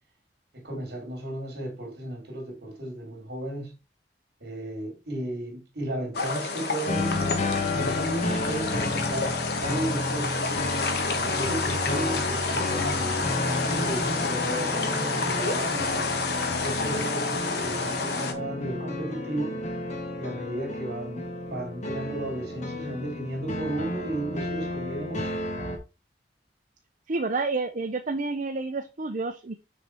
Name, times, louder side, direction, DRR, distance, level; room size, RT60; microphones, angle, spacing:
voice 1, 0.5-3.8 4.4-10.6 11.1-16.1 16.6-19.6 20.2-25.4, right 1 dB, 65° right, 2.8 m, -34 dB
sound 1, 6.1-18.3, left 4 dB, 65° left, 1.3 m, -29 dB
sound 2, 6.9-25.8, left 2 dB, 45° left, 1.5 m, -32 dB
sound 3, 12.2-16.6, left 1 dB, 10° right, 2.1 m, -45 dB
voice 2, 27.1-29.5, right 3 dB, 45° right, 0.7 m, -29 dB
6.6 x 4.2 x 4.4 m
head